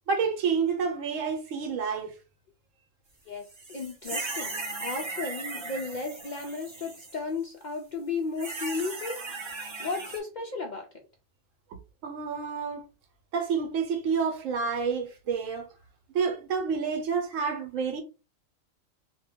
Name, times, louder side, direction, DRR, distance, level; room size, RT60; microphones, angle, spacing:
voice 1, 0.1-2.2 12.0-12.8 13.3-15.7 16.1-18.0, right 5 dB, 80° right, 1.1 m, -29 dB
sound 1, 3.5-7.2 8.4-10.2, right 3 dB, 35° right, 0.4 m, -37 dB
voice 2, 3.7-4.5 4.8-9.2 9.8-10.9, left 4 dB, 80° left, 0.4 m, -34 dB
2.5 x 2.2 x 3.4 m
omnidirectional pair, 1.4 m